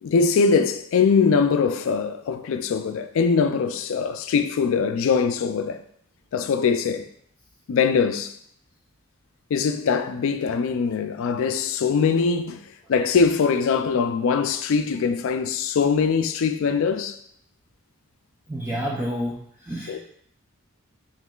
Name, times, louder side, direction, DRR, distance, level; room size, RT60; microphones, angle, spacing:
voice 1, 0.0-5.8 6.3-7.1 7.7-8.3 9.5-17.2 19.9-20.0, left 5 dB, 65° left, 0.3 m, -22 dB
voice 2, 18.5-19.4 19.7-20.0, equal, 10° right, 0.4 m, -28 dB
5.5 x 3.0 x 2.3 m
head